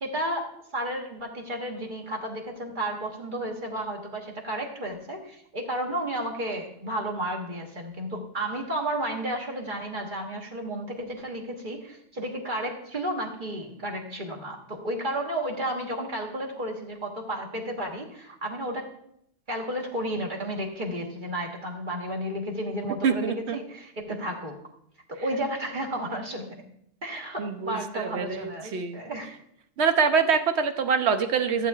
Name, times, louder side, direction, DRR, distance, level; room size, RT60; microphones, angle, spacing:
voice 1, 0.0-19.0 19.5-24.6 25.1-26.6 27.0-29.4, right 1 dB, 45° right, 1 dB, 1.4 m, -32 dB
voice 2, 23.0-23.6 27.4-29.0 29.8-31.7, right 6 dB, 70° right, 8 dB, 0.9 m, -25 dB
14.5 x 7.8 x 2.4 m, 0.73 s
omnidirectional pair, 1.2 m